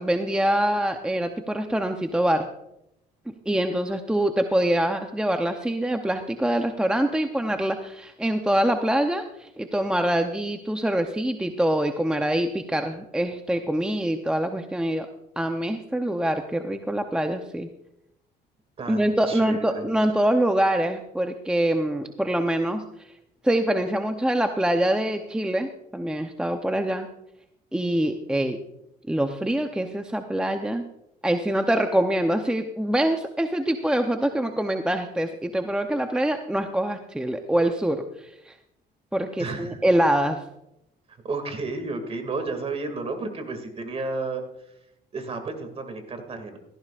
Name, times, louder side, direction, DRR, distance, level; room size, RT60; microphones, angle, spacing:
voice 1, 0.0-2.5 3.3-15.1 15.4-17.7 18.9-23.1 23.4-27.1 27.7-28.6 29.1-30.9 31.2-38.5 39.1-40.5, right 1 dB, 5° right, 6 dB, 0.7 m, -25 dB
voice 2, 18.8-19.9 39.4-39.8 41.2-44.4 45.1-46.6, right 3 dB, 35° right, 6 dB, 2.3 m, -32 dB
17.0 x 14.5 x 2.5 m, 0.83 s
cardioid pair, 110°, 17 cm